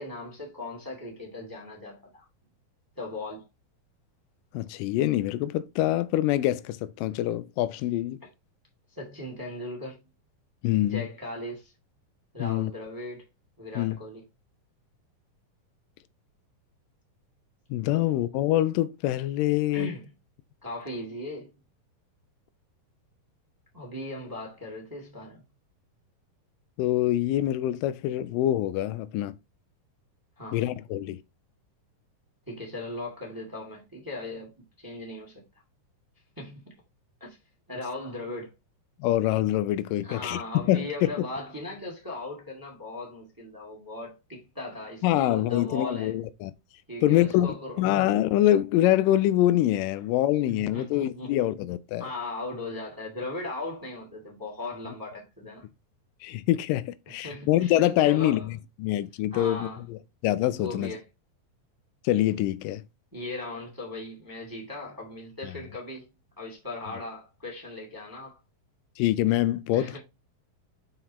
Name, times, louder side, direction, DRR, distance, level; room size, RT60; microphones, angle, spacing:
voice 1, 0.0-2.2 2.9-3.5 8.9-10.0 10.8-11.7 12.3-13.2 13.6-14.2 17.9-18.0 19.7-20.1 20.6-21.6 23.7-25.4 30.4-30.6 32.5-34.5 34.8-35.4 36.4-36.7 37.2-37.4 37.7-38.5 40.0-46.1 46.9-47.8 49.9-50.0 50.4-51.3 52.0-55.7 57.2-58.5 59.3-59.8 60.6-61.0 63.1-66.1 66.4-68.4 69.7-70.0, left 2 dB, 10° right, 1.4 m, -38 dB
voice 2, 4.5-8.2 10.6-11.0 12.4-12.7 13.8-14.0 17.7-19.9 26.8-29.3 30.5-31.2 39.0-40.9 45.0-46.5 47.0-47.5 47.8-52.0 56.2-58.4 58.8-60.9 62.0-62.8 69.0-70.0, left 14 dB, 85° left, 2.2 m, -25 dB
5.9 x 4.5 x 4.1 m
omnidirectional pair, 3.8 m